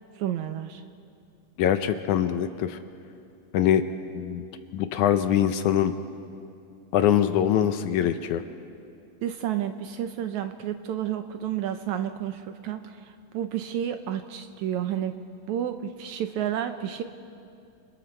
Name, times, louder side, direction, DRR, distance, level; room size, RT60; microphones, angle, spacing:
voice 1, 0.2-0.8 9.2-15.2 15.5-17.0, right 10 dB, 75° right, 8 dB, 1.9 m, -31 dB
voice 2, 1.6-2.8 3.5-3.8 4.1-4.4 4.7-5.9 6.9-8.4, left 10 dB, 75° left, 9 dB, 2.0 m, -23 dB
29.0 x 26.5 x 4.4 m, 2.4 s
omnidirectional pair, 3.8 m